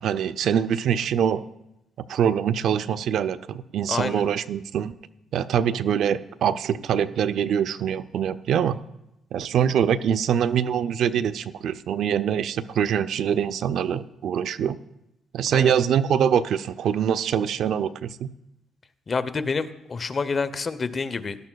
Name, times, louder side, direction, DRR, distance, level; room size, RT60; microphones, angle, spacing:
voice 1, 0.0-1.4 2.1-4.9 5.3-8.8 9.3-14.8 15.3-18.3, right 8 dB, 70° right, 14 dB, 0.4 m, -24 dB
voice 2, 3.9-4.2 15.5-15.7 19.1-21.4, left 4 dB, 35° left, 12 dB, 0.7 m, -28 dB
17.5 x 13.0 x 2.3 m, 0.88 s
cardioid pair, 90°, 0 cm